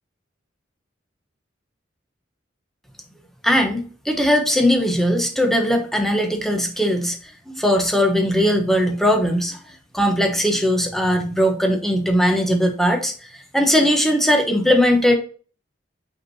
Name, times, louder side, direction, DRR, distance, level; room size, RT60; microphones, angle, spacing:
voice 1, 3.4-7.2 7.5-9.6 9.9-15.2, equal, ahead, 3 dB, 1.1 m, -19 dB
6.0 x 4.7 x 4.2 m, 0.40 s
head